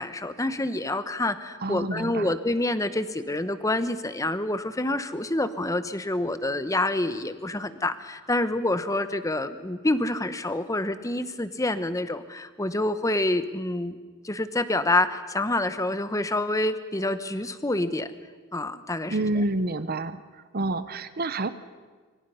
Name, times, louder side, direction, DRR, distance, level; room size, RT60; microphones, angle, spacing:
voice 1, 0.0-14.0 14.2-18.1 18.5-19.2, left 2 dB, 15° left, 12 dB, 1.0 m, -27 dB
voice 2, 1.6-2.3 19.1-20.2 20.5-21.5, right 2 dB, 45° right, 13 dB, 0.9 m, -28 dB
25.0 x 25.0 x 5.6 m, 1.5 s
head